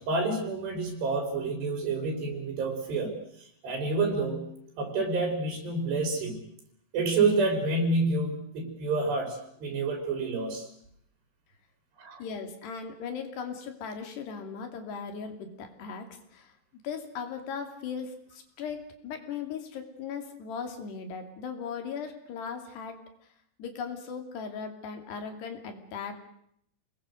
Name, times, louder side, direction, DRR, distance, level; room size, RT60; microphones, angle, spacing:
voice 1, 0.0-4.5 4.8-6.4 6.9-10.7 12.0-12.2, right 3 dB, 75° right, 4 dB, 5.9 m, -29 dB
voice 2, 12.2-16.6 16.8-23.3 23.6-26.1, left 6 dB, 75° left, 6 dB, 4.7 m, -38 dB
29.0 x 20.5 x 6.5 m, 0.70 s
omnidirectional pair, 4.9 m